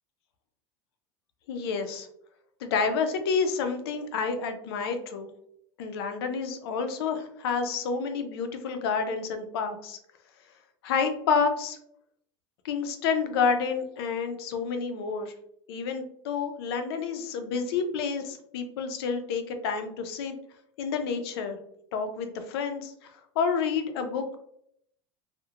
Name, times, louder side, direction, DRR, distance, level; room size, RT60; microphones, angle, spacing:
voice 1, 1.5-2.1 2.6-5.3 5.8-10.0 10.8-11.8 12.6-15.3 15.7-20.3 20.8-21.6 21.9-23.1 23.4-24.2, left 5 dB, 85° left, 7 dB, 0.4 m, -29 dB
2.7 x 2.1 x 2.3 m, 0.72 s
supercardioid pair, 130°, 13 cm